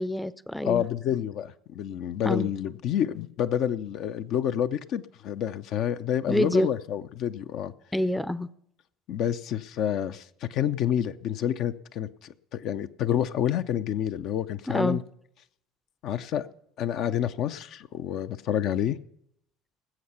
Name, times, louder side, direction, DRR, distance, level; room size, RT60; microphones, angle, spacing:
voice 1, 0.0-0.8 2.2-2.5 6.3-6.7 7.9-8.5 14.7-15.0, left 1 dB, 5° left, 18 dB, 0.5 m, -26 dB
voice 2, 0.6-7.7 9.1-15.0 16.0-16.5 16.8-19.0, left 10 dB, 55° left, 10 dB, 0.6 m, -28 dB
19.0 x 7.8 x 5.6 m, 0.71 s
hypercardioid pair, 65°, 0 cm